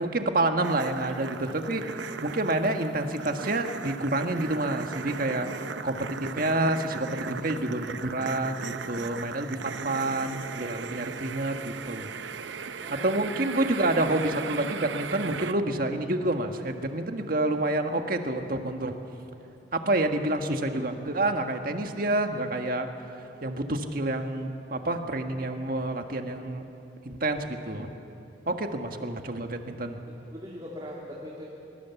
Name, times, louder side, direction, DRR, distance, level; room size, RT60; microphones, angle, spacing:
voice 1, 0.0-1.8 2.2-5.5 5.8-12.1 13.0-19.0 19.7-22.9 23.4-26.6 27.0-27.9 28.5-30.0, right 2 dB, 50° right, 5 dB, 1.6 m, -28 dB
sound 1, 0.6-15.5, right 5 dB, 90° right, 0.7 m, -37 dB
voice 2, 12.8-13.2 30.0-31.5, equal, 25° right, -4 dB, 2.4 m, -41 dB
23.0 x 22.5 x 7.2 m, 2.8 s
head